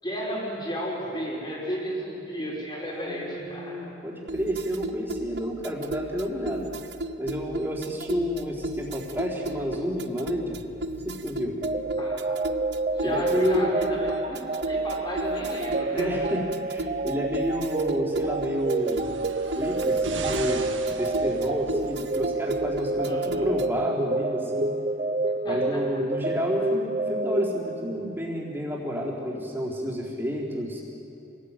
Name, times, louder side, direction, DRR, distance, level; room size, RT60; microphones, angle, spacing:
voice 1, 0.0-3.9 12.0-12.4 12.9-16.3 23.0-23.5 25.4-26.0, equal, 25° left, -2 dB, 5.1 m, -33 dB
voice 2, 2.9-6.7 7.2-10.6 10.9-11.6 13.0-13.7 15.9-19.1 19.5-24.8 25.4-30.8, equal, 10° right, -4 dB, 4.0 m, -30 dB
sound 1, 4.3-23.8, right 2 dB, 60° right, 0.9 m, -36 dB
sound 2, 11.6-28.2, right 2 dB, 35° right, 0.6 m, -29 dB
sound 3, 18.6-22.0 22.9-23.0, right 4 dB, 90° right, 1.8 m, -39 dB
26.5 x 19.0 x 9.1 m, 2.9 s
head